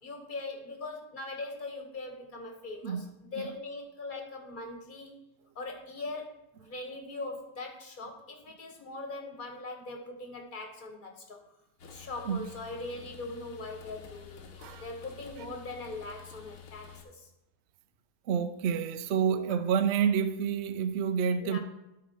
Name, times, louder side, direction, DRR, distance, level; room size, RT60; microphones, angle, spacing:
voice 1, 0.0-5.2 5.5-11.4 11.9-17.3 19.3-19.6 21.4-21.6, left 2 dB, 35° left, 1.3 m, -41 dB
voice 2, 2.8-3.5 12.3-12.5 14.6-14.9 18.3-21.6, right 7 dB, 75° right, 0.6 m, -29 dB
sound 1, 11.8-17.1, left 8 dB, 65° left, 1.3 m, -50 dB
12.0 x 4.1 x 4.5 m
omnidirectional pair, 1.7 m